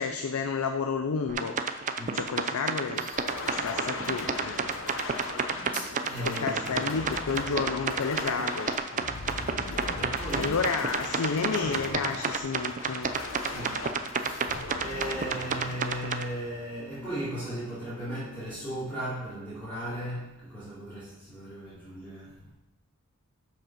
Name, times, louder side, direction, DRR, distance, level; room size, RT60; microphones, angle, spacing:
voice 1, 0.0-1.6 2.1-3.1 3.4-4.6 6.2-8.8 10.3-13.1, left 5 dB, 85° left, 6 dB, 0.5 m, -31 dB
sound 1, 1.3-16.2, right 5 dB, 35° right, 0.5 m, -30 dB
voice 2, 2.0-2.3 2.9-3.2 5.7-7.1 9.9-10.7 13.3-22.5, right 1 dB, 10° left, -13 dB, 2.8 m, -37 dB
sound 2, 3.1-17.0, left 3 dB, 65° left, 0.9 m, -39 dB
7.2 x 5.5 x 5.8 m, 0.99 s
head